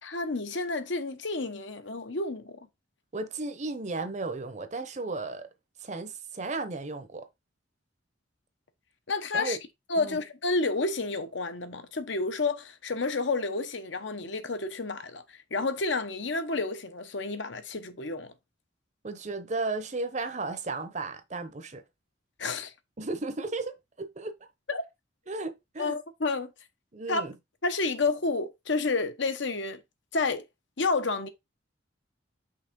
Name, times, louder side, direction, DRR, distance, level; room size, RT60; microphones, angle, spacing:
voice 1, 0.0-2.6 9.1-9.6 9.9-18.3 22.4-22.7 24.7-24.8 25.8-26.5 27.1-27.2 27.6-29.8 30.1-30.4 30.8-31.3, left 3 dB, 65° left, 0.9 m, -30 dB
voice 2, 3.1-5.5 5.8-7.3 9.3-9.6 10.0-10.2 19.0-21.8 23.0-24.3 25.3-26.0 26.9-27.3, right 3 dB, 35° right, 0.8 m, -34 dB
5.7 x 3.4 x 5.2 m
head